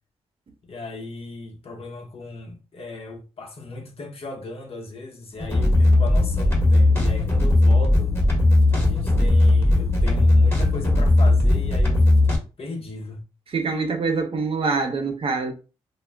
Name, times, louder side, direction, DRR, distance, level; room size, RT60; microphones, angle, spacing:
voice 1, 0.6-8.1 8.7-13.2, left 2 dB, 55° left, 0.8 m, -37 dB
sound 1, 5.3-12.4, left 2 dB, 20° left, 1.2 m, -18 dB
voice 2, 13.5-15.5, right 4 dB, 55° right, 0.6 m, -25 dB
2.3 x 2.0 x 3.4 m
supercardioid pair, 55°, 12 cm